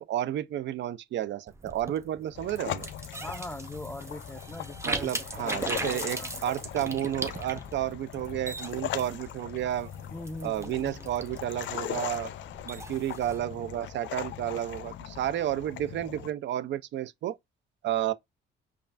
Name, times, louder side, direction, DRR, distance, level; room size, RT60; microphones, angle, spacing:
voice 1, 0.0-2.9 4.8-9.9 10.4-12.3 12.6-17.4 17.8-18.1, right 12 dB, 65° right, 0.4 m, -31 dB
sound 1, 1.5-13.4, right 2 dB, 15° right, 0.8 m, -39 dB
sound 2, 2.3-16.3, left 12 dB, 70° left, 0.4 m, -40 dB
voice 2, 3.2-6.5 10.1-11.1, left 1 dB, 10° left, 0.4 m, -42 dB
5.3 x 2.4 x 2.4 m
cardioid pair, 90°, 20 cm